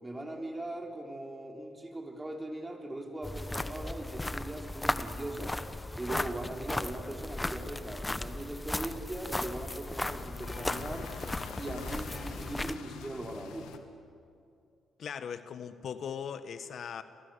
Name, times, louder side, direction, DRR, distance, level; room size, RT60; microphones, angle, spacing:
voice 1, 0.0-5.6 6.0-11.1 11.5-13.7, right 1 dB, 15° right, 2 dB, 4.4 m, -40 dB
sound 1, 3.2-12.8, left 1 dB, 10° left, 1.1 m, -36 dB
sound 2, 6.0-13.8, left 8 dB, 90° left, 2.0 m, -48 dB
voice 2, 15.0-17.0, left 7 dB, 60° left, 11 dB, 1.2 m, -39 dB
30.0 x 22.5 x 8.2 m, 2.4 s
cardioid pair, 90°, 0 cm